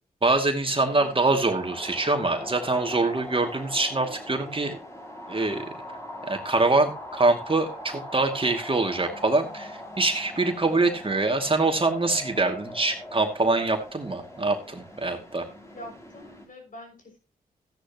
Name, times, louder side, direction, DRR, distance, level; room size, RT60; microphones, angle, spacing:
voice 1, 0.2-4.8 5.3-5.7 6.2-15.5, right 2 dB, 35° right, 4 dB, 2.4 m, -24 dB
sound 1, 0.6-16.4, left 1 dB, 20° left, 5.7 m, -41 dB
voice 2, 15.7-17.2, left 1 dB, 55° left, 2 dB, 6.3 m, -44 dB
14.5 x 10.0 x 3.0 m, 0.29 s
cardioid pair, 50°, 16 cm